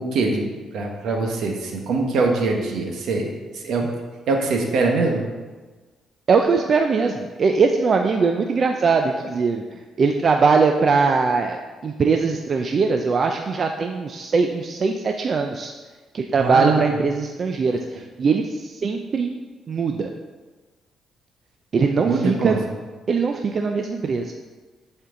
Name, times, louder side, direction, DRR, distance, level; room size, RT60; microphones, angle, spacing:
voice 1, 0.0-3.9 4.3-5.2 16.4-16.9 22.0-22.6, right 3 dB, 75° right, 2 dB, 1.2 m, -23 dB
voice 2, 6.3-15.7 16.1-19.4 19.7-20.1 21.7-22.6 23.1-24.3, right 4 dB, 45° right, 4 dB, 0.5 m, -21 dB
10.5 x 4.4 x 3.8 m, 1.3 s
cardioid pair, 90°, 0 cm